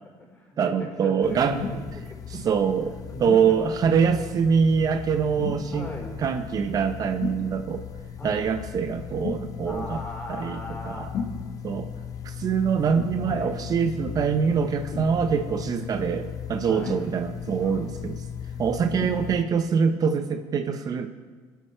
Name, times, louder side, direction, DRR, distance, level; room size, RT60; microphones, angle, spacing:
voice 1, 0.0-3.7 4.1-4.3 5.7-6.2 8.2-8.5 9.6-11.1 13.2-13.6 16.6-17.0, left 1 dB, 15° left, 0 dB, 4.5 m, -39 dB
voice 2, 0.6-1.6 2.3-2.9 3.2-5.9 6.2-7.8 8.2-10.0 10.3-10.6 10.9-11.1 11.6-11.9 12.2-18.2 18.6-21.1, right 6 dB, 45° right, 8 dB, 0.8 m, -24 dB
sound 1, 1.2-19.4, left 8 dB, 40° left, 1.1 m, -38 dB
sound 2, 1.5-1.8 3.2-3.5 5.4-5.7 7.2-7.4 9.2-9.5 11.1-11.4 12.9-13.2 14.9-15.2 16.8-17.4 18.9-19.2 20.0-20.1, left 5 dB, 65° left, 2.1 m, -33 dB
20.0 x 11.5 x 4.5 m, 1.4 s
cardioid pair, 110°, 9 cm